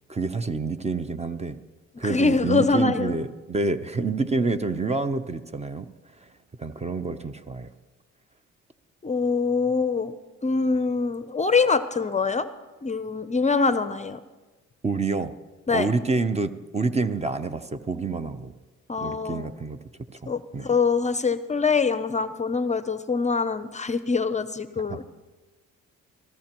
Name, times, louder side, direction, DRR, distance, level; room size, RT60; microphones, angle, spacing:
voice 1, 0.1-1.6 2.0-5.9 6.2-6.3 6.6-7.7 14.8-15.3 15.7-18.5 19.0-19.8 20.2-20.7 24.9-25.0, right 3 dB, 20° right, 10 dB, 0.6 m, -28 dB
voice 2, 2.0-3.2 9.0-10.1 10.4-12.5 12.8-14.2 15.7-15.9 18.9-19.5 20.3-25.0, left 4 dB, 25° left, 12 dB, 0.5 m, -24 dB
22.5 x 14.5 x 3.0 m, 1.3 s
cardioid pair, 90°, 30 cm